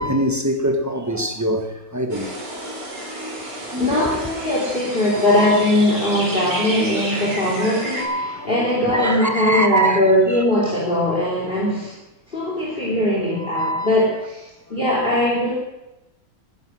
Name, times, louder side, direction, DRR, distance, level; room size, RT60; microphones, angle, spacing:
voice 1, 0.0-1.7 1.9-2.9 3.7-4.1 5.3-5.6 8.0-8.5 8.8-10.0 12.7-12.8 13.4-13.9, right 1 dB, 10° right, 1.3 m, -24 dB
sound 1, 2.1-8.0, right 1 dB, 60° right, 4.3 m, -31 dB
voice 2, 3.5-12.0 12.3-15.6, left 1 dB, 25° left, 3.4 m, -20 dB
19.0 x 11.5 x 6.3 m
omnidirectional pair, 2.0 m